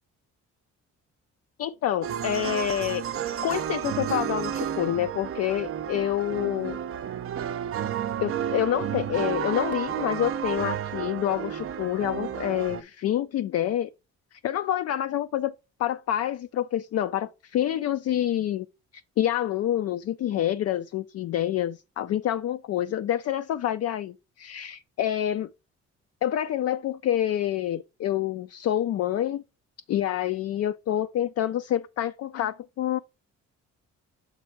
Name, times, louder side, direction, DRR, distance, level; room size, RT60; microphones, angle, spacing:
voice 1, 1.6-3.0 3.4-6.8 8.2-13.9 14.3-15.5 15.8-18.7 19.2-25.5 26.2-29.4 29.9-33.0, left 11 dB, 55° left, 0.4 m, -27 dB
sound 1, 2.0-12.8, right 9 dB, 45° right, 0.5 m, -31 dB
7.3 x 3.4 x 4.6 m
cardioid pair, 90°, 30 cm